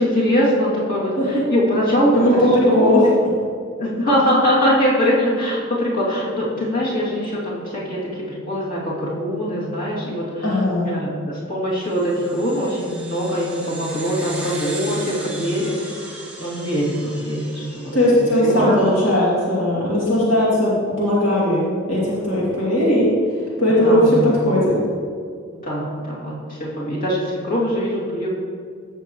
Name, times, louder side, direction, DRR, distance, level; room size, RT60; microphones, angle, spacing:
voice 1, 0.0-2.9 3.8-8.0 8.3-18.8 23.7-24.5 25.6-28.3, equal, 40° left, -7 dB, 2.7 m, -22 dB
voice 2, 2.1-3.1 10.4-10.9 17.9-23.1 23.6-24.7, left 1 dB, 70° left, -7 dB, 2.7 m, -18 dB
sound 1, 11.9-18.7, right 2 dB, 5° right, 1.4 m, -37 dB
14.5 x 7.0 x 3.1 m, 2.2 s
head